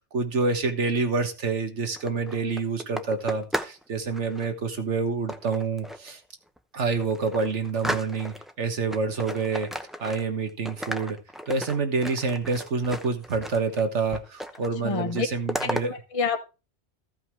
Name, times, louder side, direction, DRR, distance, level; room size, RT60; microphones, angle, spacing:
voice 1, 0.1-6.2 6.7-9.7 10.0-11.2 11.5-15.9, right 4 dB, 85° right, 7 dB, 1.7 m, -27 dB
sound 1, 1.8-3.8 4.1-4.5 5.3-6.1 6.6-6.7 7.0-8.5 8.9-10.4 10.7-13.8 14.1-14.7 15.0-15.8, equal, ahead, 0.7 m, -35 dB
voice 2, 14.8-15.3 15.6-16.5, left 5 dB, 30° left, 5 dB, 1.1 m, -28 dB
14.5 x 5.5 x 4.6 m, 0.30 s
omnidirectional pair, 1.2 m